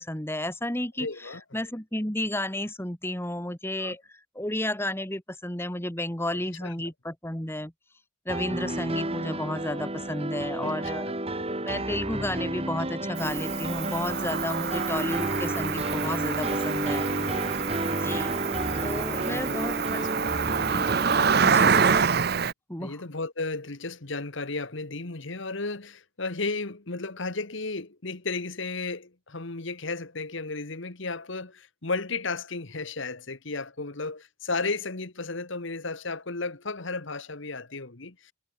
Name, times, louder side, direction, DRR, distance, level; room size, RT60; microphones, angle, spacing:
voice 1, 0.0-7.7 8.3-11.1 11.6-17.0 17.9-18.3 18.8-20.0 20.6-20.8 21.4-21.8 22.7-23.0, left 1 dB, 10° left, 2.0 m, -32 dB
voice 2, 1.0-1.4 3.8-3.9 6.6-6.7 10.6-10.7 11.0-11.2 16.9-17.7 19.1-19.6 20.0-20.1 22.8-38.3, left 3 dB, 60° left, 1.6 m, -34 dB
sound 1, 8.3-22.0, right 1 dB, 30° right, 3.7 m, -31 dB
Cricket, 13.2-22.5, right 6 dB, 50° right, 0.7 m, -27 dB
head